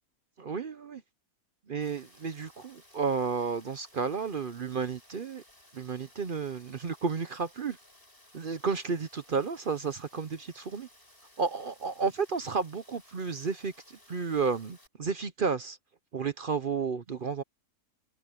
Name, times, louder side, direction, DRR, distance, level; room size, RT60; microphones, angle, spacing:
voice 1, 0.4-1.0 1.7-5.4 5.7-7.8 8.3-10.9 11.4-15.8 16.1-17.4, right 5 dB, 45° right, 0.7 m, -32 dB
Rain, 1.8-14.9, left 1 dB, 35° left, 8.4 m, -59 dB
omnidirectional pair, 1.6 m